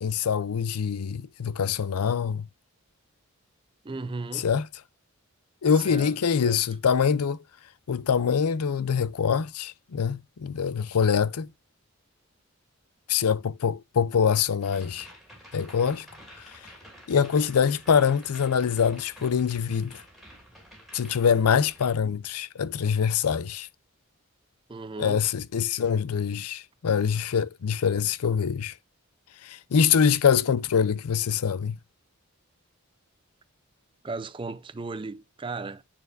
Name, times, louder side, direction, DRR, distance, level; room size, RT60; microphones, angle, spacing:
voice 1, 0.0-2.5 4.3-4.6 5.6-7.4 7.9-11.5 13.1-15.1 15.5-16.1 16.4-16.7 17.1-20.0 20.9-23.7 25.0-28.8 29.4-31.8, left 7 dB, 90° left, 0.5 m, -24 dB
voice 2, 3.8-4.5 5.7-6.6 24.7-25.2 34.0-35.8, right 3 dB, 20° right, 0.4 m, -36 dB
sound 1, 14.6-21.9, equal, ahead, 2.5 m, -50 dB
9.3 x 4.3 x 2.5 m
head